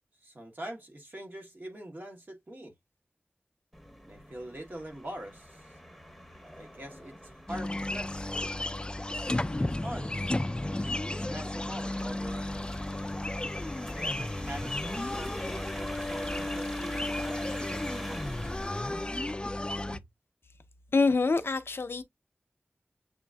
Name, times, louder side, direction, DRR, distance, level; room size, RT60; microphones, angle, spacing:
voice 1, 0.2-2.7 4.1-5.7 6.4-8.6 9.5-10.2 10.7-12.5 13.7-18.6 19.9-20.1, right 1 dB, 55° right, 1.3 m, -44 dB
sound 1, 3.7-19.3, equal, ahead, 0.8 m, -45 dB
sound 2, 7.5-20.0, left 1 dB, 25° left, 0.3 m, -33 dB
voice 2, 20.9-22.0, left 4 dB, 75° left, 0.6 m, -25 dB
6.9 x 2.5 x 2.2 m
wide cardioid pair, 55°, 4 cm